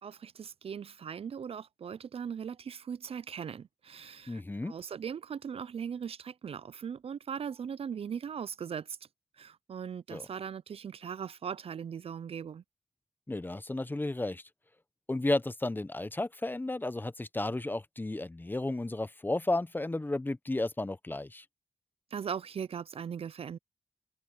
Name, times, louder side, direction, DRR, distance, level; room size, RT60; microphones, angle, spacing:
voice 1, 0.0-9.0 9.4-12.6 22.1-23.6, right 7 dB, 60° right, 0.4 m, -39 dB
voice 2, 4.3-4.7 10.1-10.3 13.3-14.4 15.1-21.4, left 2 dB, 20° left, 0.6 m, -33 dB
open air
cardioid pair, 75°, 11 cm